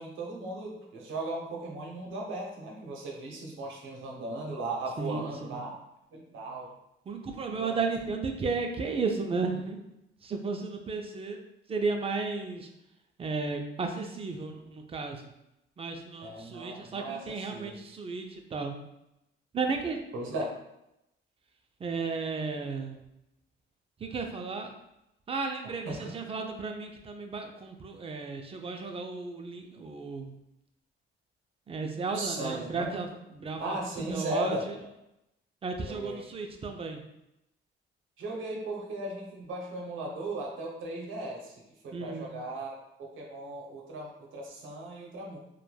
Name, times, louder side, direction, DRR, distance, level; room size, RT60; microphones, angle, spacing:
voice 1, 0.0-5.8 6.1-6.7 7.5-7.8 16.2-17.8 20.1-20.5 25.8-26.1 32.1-33.0 33.6-34.9 35.8-36.2 38.2-41.5 41.8-45.4, right 2 dB, 80° right, -1 dB, 0.7 m, -37 dB
voice 2, 5.0-5.6 7.1-9.8 10.2-11.4 11.7-12.7 13.2-15.2 15.8-18.7 19.5-20.0 21.8-23.0 24.0-24.7 25.3-30.3 31.7-33.8 34.1-34.5 35.6-37.0 41.9-42.3, right 4 dB, 30° right, 4 dB, 0.4 m, -34 dB
3.0 x 2.2 x 2.2 m, 0.86 s
cardioid pair, 90°, 20 cm